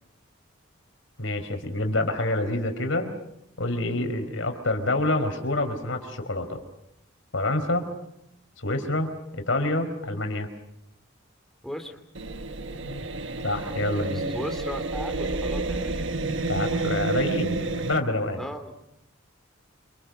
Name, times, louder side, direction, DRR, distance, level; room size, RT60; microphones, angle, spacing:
voice 1, 1.2-3.1 3.6-6.6 7.3-7.9 8.6-10.5 12.9-13.1 13.4-14.3 16.5-18.4, left 2 dB, 80° left, 6 dB, 4.6 m, -27 dB
voice 2, 11.6-12.0 14.1-16.1 18.4-18.7, equal, ahead, 5 dB, 3.0 m, -36 dB
sound 1, 12.1-18.0, right 3 dB, 70° right, 1.4 m, -30 dB
28.0 x 26.5 x 6.5 m, 0.82 s
head